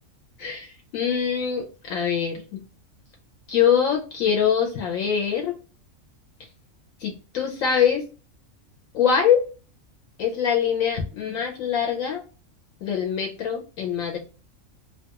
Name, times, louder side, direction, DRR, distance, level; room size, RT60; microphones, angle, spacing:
voice 1, 0.4-2.6 3.5-5.5 7.0-8.1 8.9-9.4 10.2-12.2 12.8-14.2, left 8 dB, 80° left, 1 dB, 1.0 m, -23 dB
2.8 x 2.2 x 2.8 m, 0.35 s
omnidirectional pair, 1.4 m